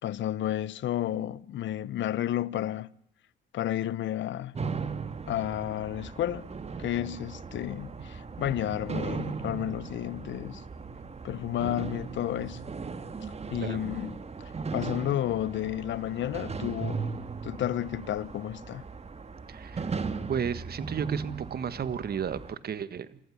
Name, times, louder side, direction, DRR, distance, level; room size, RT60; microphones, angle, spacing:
voice 1, 0.0-2.9 3.5-4.6 5.3-6.5 6.8-10.6 11.2-12.6 13.2-14.2 14.7-17.0 17.4-18.8, left 12 dB, 70° left, 0.8 m, -31 dB
sound 1, 4.6-22.5, right 4 dB, 30° right, 1.9 m, -37 dB
voice 2, 19.5-20.0 20.3-23.2, right 7 dB, 50° right, 1.5 m, -33 dB
27.0 x 14.5 x 9.9 m
cardioid pair, 90°, 20 cm